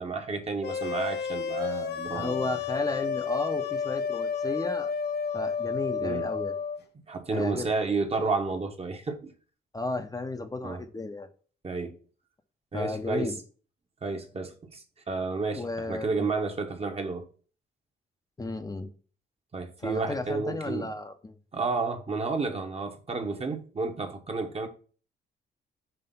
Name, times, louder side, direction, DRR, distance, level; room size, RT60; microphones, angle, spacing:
voice 1, 0.0-2.6 6.0-6.3 7.1-9.3 10.6-10.8 11.6-12.0 12.7-13.3 14.0-17.3 19.5-20.9 21.5-24.7, right 3 dB, 30° right, 1.1 m, -31 dB
sound 1, 0.6-6.8, left 6 dB, 55° left, 0.8 m, -31 dB
voice 2, 2.1-4.9 5.3-6.5 7.3-7.7 9.7-11.3 12.7-13.4 15.5-16.3 18.4-18.9 19.8-21.4, left 2 dB, 20° left, 0.6 m, -34 dB
5.7 x 3.3 x 5.4 m
cardioid pair, 90°, 20 cm